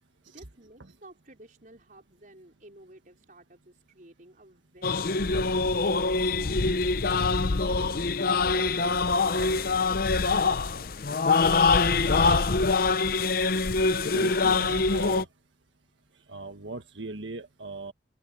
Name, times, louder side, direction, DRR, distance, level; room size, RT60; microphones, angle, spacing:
voice 1, 0.2-8.8 9.3-11.1, right 2 dB, 45° right, 4.8 m, -54 dB
sound 1, 4.8-15.3, left 4 dB, 55° left, 0.7 m, -24 dB
voice 2, 14.0-15.3 16.3-17.9, right 3 dB, 85° right, 1.6 m, -39 dB
open air
head